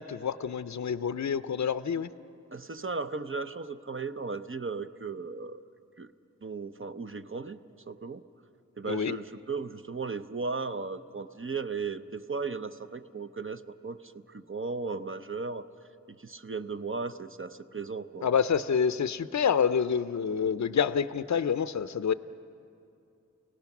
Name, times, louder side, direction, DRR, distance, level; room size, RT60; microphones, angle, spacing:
voice 1, 0.0-2.1 8.8-9.2 18.2-22.1, left 7 dB, 65° left, 13 dB, 0.5 m, -27 dB
voice 2, 2.5-5.6 6.0-6.1 6.4-7.6 7.9-8.2 8.8-15.7 16.1-18.3, right 4 dB, 45° right, 9 dB, 0.7 m, -36 dB
30.0 x 17.5 x 6.0 m, 2.6 s
wide cardioid pair, 50°, 30 cm